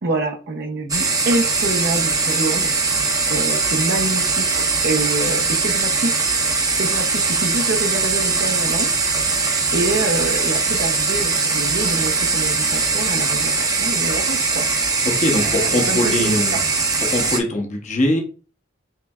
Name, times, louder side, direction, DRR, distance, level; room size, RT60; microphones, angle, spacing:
voice 1, 0.0-6.1 6.7-9.0 9.7-14.7 15.3-15.6 15.9-16.6, right 2 dB, 60° right, 2 dB, 0.7 m, -26 dB
sound 1, 0.9-17.4, right 4 dB, 20° right, 0.7 m, -21 dB
voice 2, 15.0-16.6 17.0-18.2, left 1 dB, 40° left, 2 dB, 0.8 m, -21 dB
5.6 x 3.2 x 2.3 m, 0.36 s
head